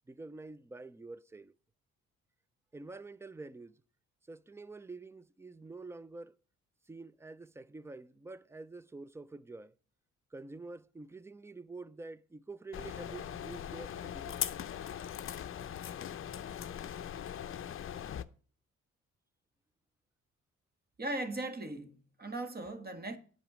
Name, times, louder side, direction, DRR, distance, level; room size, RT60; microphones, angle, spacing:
voice 1, 0.1-1.5 2.7-3.8 4.3-6.4 6.9-9.7 10.3-14.4, right 3 dB, 10° right, 0.4 m, -47 dB
sound 1, 12.7-18.2, left 9 dB, 45° left, 0.6 m, -40 dB
voice 2, 21.0-23.2, right 2 dB, 30° right, 1.5 m, -38 dB
9.0 x 5.3 x 6.2 m
cardioid pair, 90°, 30 cm